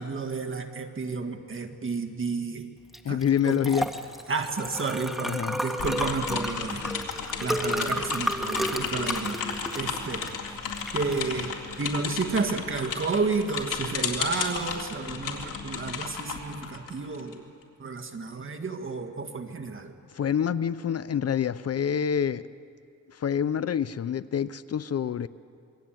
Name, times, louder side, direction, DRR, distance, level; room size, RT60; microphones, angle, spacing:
voice 1, 0.0-2.7 3.1-3.7 4.3-6.9 7.4-10.3 10.9-17.4 17.8-20.0, right 4 dB, 40° right, 5 dB, 1.9 m, -31 dB
Liquid, 2.9-13.0, equal, ahead, 2.0 m, -33 dB
voice 2, 3.0-3.9 5.2-5.6 20.1-22.4 23.1-25.3, left 8 dB, 50° left, 15 dB, 0.7 m, -27 dB
sound 1, 5.8-17.3, left 6 dB, 75° left, 3.7 m, -34 dB
27.0 x 23.0 x 9.2 m, 2.5 s
cardioid pair, 85°, 32 cm